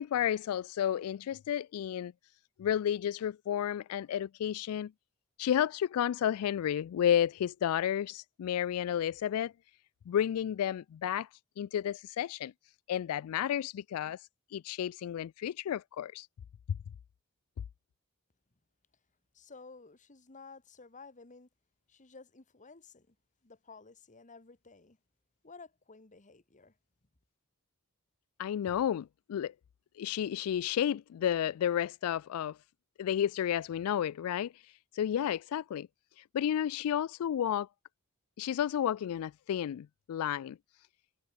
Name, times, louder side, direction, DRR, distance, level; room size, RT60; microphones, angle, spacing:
voice 1, 0.0-2.1 2.6-4.9 5.4-9.5 10.1-11.3 11.6-12.5 12.9-16.3 28.4-29.5 30.0-32.6 33.0-35.9 36.2-37.7 38.4-40.6, left 10 dB, 75° left, 0.3 m, -32 dB
voice 2, 19.3-21.5 21.9-23.1 23.4-25.0 25.4-26.7, left 4 dB, 35° left, 1.4 m, -53 dB
head